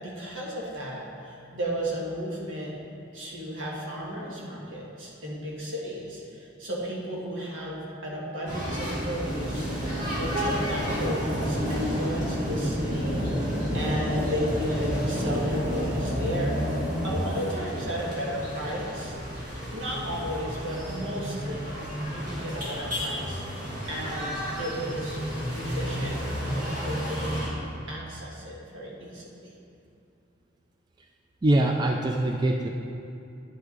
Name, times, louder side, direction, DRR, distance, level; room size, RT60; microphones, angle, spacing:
voice 1, 0.0-2.8 3.1-13.2 13.7-16.6 17.0-19.1 19.7-21.8 22.1-27.5 27.9-29.5, equal, 75° right, -4 dB, 1.7 m, -34 dB
sound 1, 8.5-27.5, equal, 40° right, 2.0 m, -30 dB
voice 2, 31.4-32.7, right 1 dB, 20° right, 2 dB, 0.3 m, -23 dB
9.8 x 5.9 x 4.0 m, 2.6 s
head